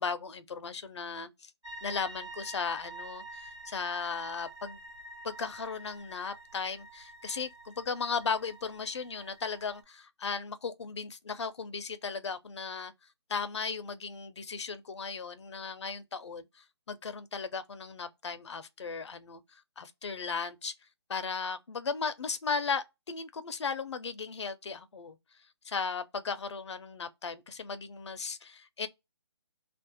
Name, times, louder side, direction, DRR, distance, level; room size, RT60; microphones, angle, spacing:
voice 1, 0.0-1.5 1.8-4.8 5.2-12.9 13.3-20.7 21.1-25.2 25.6-28.9, left 5 dB, 80° left, 0.5 m, -36 dB
sound 1, 1.6-9.8, right 2 dB, 85° right, 1.1 m, -47 dB
2.5 x 2.1 x 2.6 m
hypercardioid pair, 165°, 15 cm